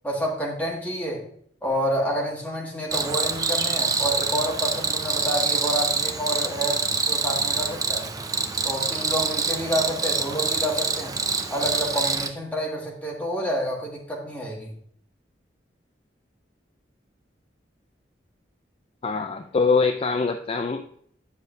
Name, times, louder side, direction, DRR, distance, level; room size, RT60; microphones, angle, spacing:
voice 1, 0.0-1.2 1.6-8.1 8.6-11.2 11.5-14.7, equal, 10° left, -3 dB, 1.8 m, -29 dB
Cricket, 2.9-12.3, right 4 dB, 20° right, 0.5 m, -26 dB
voice 2, 19.0-20.9, left 4 dB, 35° left, 6 dB, 0.4 m, -24 dB
9.7 x 6.4 x 2.6 m, 0.63 s
head